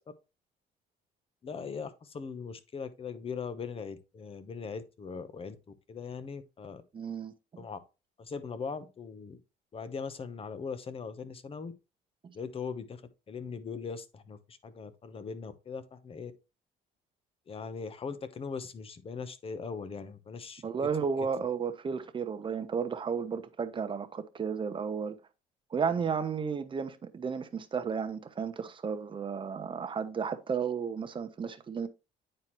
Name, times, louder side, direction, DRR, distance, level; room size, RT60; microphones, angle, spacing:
voice 1, 1.4-5.5 5.9-6.8 7.6-7.8 8.2-9.4 9.7-11.7 12.3-13.0 13.3-16.3 17.5-20.6, left 5 dB, 35° left, 0.9 m, -40 dB
voice 2, 6.9-7.3 12.2-12.3 20.6-25.2 25.7-31.9, right 6 dB, 30° right, 0.9 m, -33 dB
9.2 x 4.4 x 3.1 m
cardioid pair, 110°, 17 cm